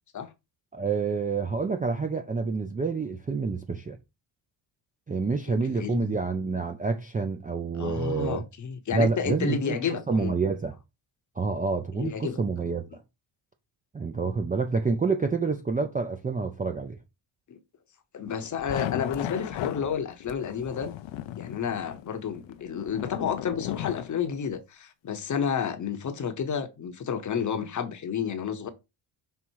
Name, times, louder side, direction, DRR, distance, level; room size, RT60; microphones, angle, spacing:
voice 1, 0.7-4.0 5.1-8.4 8.9-10.7 11.4-13.0 13.9-17.0, right 4 dB, 20° right, 0.4 m, -28 dB
voice 2, 5.8-6.2 7.7-10.4 11.9-12.4 17.5-17.6 18.1-21.0 21.4-28.7, left 7 dB, 40° left, 0.8 m, -31 dB
sound 1, 18.3-24.6, left 13 dB, 65° left, 0.6 m, -36 dB
5.6 x 3.7 x 4.5 m
wide cardioid pair, 170°, 49 cm